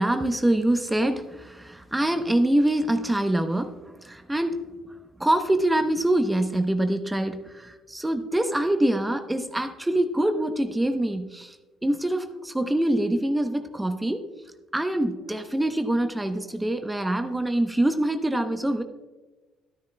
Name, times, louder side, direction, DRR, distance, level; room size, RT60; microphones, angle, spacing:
voice 1, 0.0-4.6 5.2-11.6 11.8-14.3 14.7-18.8, right 1 dB, 10° right, 8 dB, 0.8 m, -25 dB
12.0 x 10.5 x 2.2 m, 1.2 s
hypercardioid pair, 60°, 0 cm